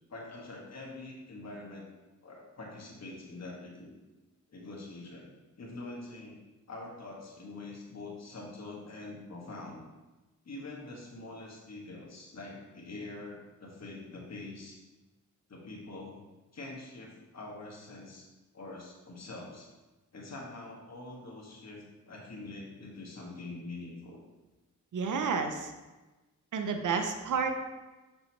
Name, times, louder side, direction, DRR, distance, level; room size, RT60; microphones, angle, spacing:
voice 1, 0.1-1.9 2.2-3.9 4.5-5.3 5.6-6.4 6.7-9.8 10.4-14.8 15.5-16.2 16.5-18.3 18.5-19.7 20.1-24.2, left 2 dB, 55° left, -2 dB, 1.5 m, -44 dB
voice 2, 24.9-25.7 26.5-27.6, right 5 dB, 75° right, 6 dB, 0.7 m, -30 dB
5.9 x 5.4 x 2.9 m, 1.1 s
cardioid pair, 65°, 31 cm